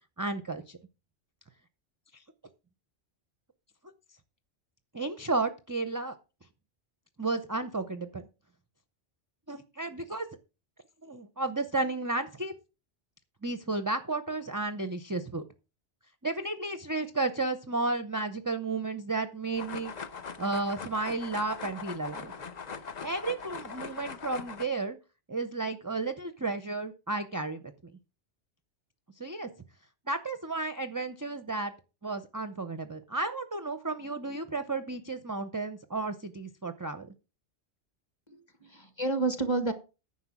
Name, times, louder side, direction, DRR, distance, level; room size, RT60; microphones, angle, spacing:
voice 1, 0.2-0.8 2.1-2.2 4.9-6.1 7.2-8.2 9.5-10.3 11.0-12.5 13.4-15.5 16.2-19.9 20.4-22.3 23.0-25.0 25.3-27.6 29.2-29.5 30.1-31.7 32.0-37.1, right 3 dB, 25° right, 10 dB, 0.5 m, -33 dB
sound 1, 19.5-24.7, left 5 dB, 45° left, 0.8 m, -41 dB
voice 2, 38.3-39.7, right 3 dB, 25° left, 9 dB, 1.4 m, -30 dB
9.9 x 6.1 x 6.1 m, 0.31 s
omnidirectional pair, 1.2 m